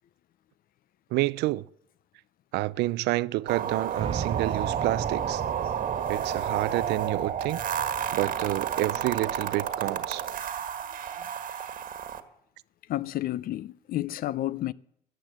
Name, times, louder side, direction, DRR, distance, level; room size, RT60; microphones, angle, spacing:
voice 1, 1.1-1.7 2.5-5.4 6.1-7.6 8.1-10.2, right 19 dB, 85° right, 0.5 m, -29 dB
sound 1, 3.5-12.2, right 8 dB, 55° right, 1.4 m, -31 dB
sound 2, 3.9-10.1, right 8 dB, 30° right, 0.4 m, -37 dB
voice 2, 12.9-14.7, left 14 dB, 60° left, 0.5 m, -30 dB
14.0 x 9.5 x 7.7 m
cardioid pair, 110°, 17 cm